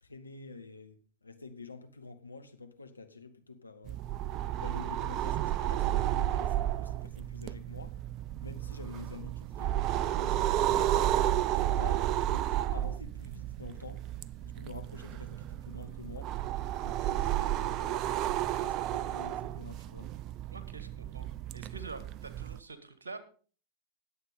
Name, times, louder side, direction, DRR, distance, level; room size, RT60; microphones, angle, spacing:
voice 1, 0.0-4.0 4.6-8.0 8.4-11.1 11.5-14.1 14.4-16.4 16.8-20.1, left 4 dB, 80° left, 1.3 m, -48 dB
sound 1, 3.9-22.6, right 12 dB, 40° right, 0.4 m, -32 dB
voice 2, 20.5-23.2, right 3 dB, 70° right, 1.6 m, -46 dB
20.0 x 8.1 x 3.7 m
figure-of-eight pair, 90°, 0 cm